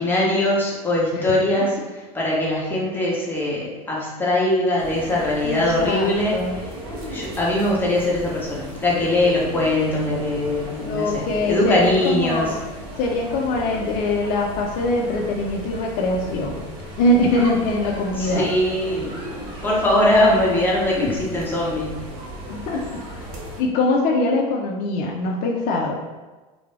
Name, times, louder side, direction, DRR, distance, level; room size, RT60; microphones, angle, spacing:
voice 1, 0.0-6.4 7.1-12.5 18.2-19.1 19.6-22.0 22.7-22.9, left 1 dB, 10° left, -5 dB, 0.8 m, -21 dB
sound 1, 4.8-23.6, equal, 60° right, 0.8 m, -35 dB
voice 2, 5.4-6.5 9.4-9.5 10.8-12.6 13.0-16.7 17.0-18.5 21.0-21.2 22.5-23.1 23.6-26.0, left 2 dB, 50° left, 0 dB, 0.4 m, -23 dB
2.2 x 2.0 x 3.2 m, 1.2 s
hypercardioid pair, 90°, 19 cm